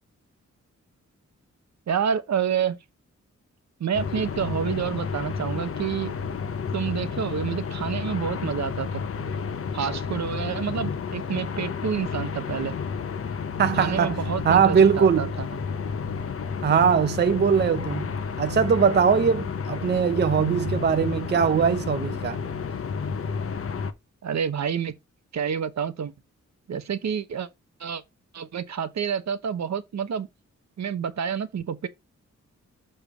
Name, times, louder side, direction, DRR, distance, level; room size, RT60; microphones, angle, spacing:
voice 1, 1.9-2.8 3.8-6.2 6.7-9.0 9.7-12.7 13.7-15.5 24.2-24.9 25.3-26.1 26.7-27.5 27.8-28.0 28.3-30.3 30.8-31.9, right 7 dB, 65° right, 0.9 m, -28 dB
sound 1, 3.9-23.9, left 6 dB, 50° left, 0.7 m, -31 dB
voice 2, 13.6-14.2 14.4-15.3 16.6-22.4, right 7 dB, 35° right, 0.5 m, -21 dB
6.8 x 3.2 x 5.9 m
wide cardioid pair, 175°, 29 cm